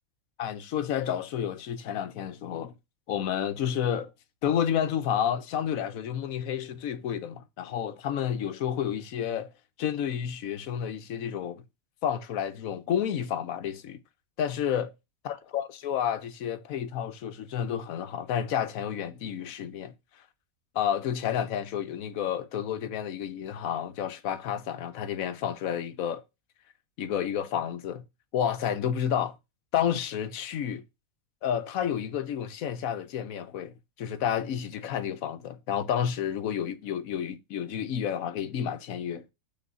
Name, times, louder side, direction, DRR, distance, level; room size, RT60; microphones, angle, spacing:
voice 1, 0.4-2.7 3.1-4.1 4.4-9.5 9.8-11.6 12.0-14.0 14.4-14.9 15.2-19.9 20.7-26.2 27.0-28.0 28.3-29.4 29.7-30.8 31.4-39.2, left 9 dB, 80° left, 1.2 m, -30 dB
6.1 x 4.4 x 5.4 m
omnidirectional pair, 1.5 m